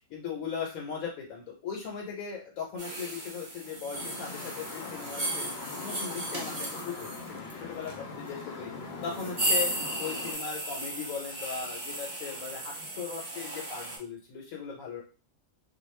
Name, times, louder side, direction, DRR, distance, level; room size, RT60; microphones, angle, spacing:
voice 1, 0.1-5.4 5.8-8.7 9.0-9.7 10.0-15.0, left 6 dB, 90° left, -1 dB, 1.1 m, -38 dB
sound 1, 2.8-14.0, right 1 dB, 40° right, 0.8 m, -36 dB
sound 2, 3.9-10.3, left 4 dB, 60° left, 0.7 m, -41 dB
2.3 x 2.2 x 3.1 m, 0.33 s
omnidirectional pair, 1.4 m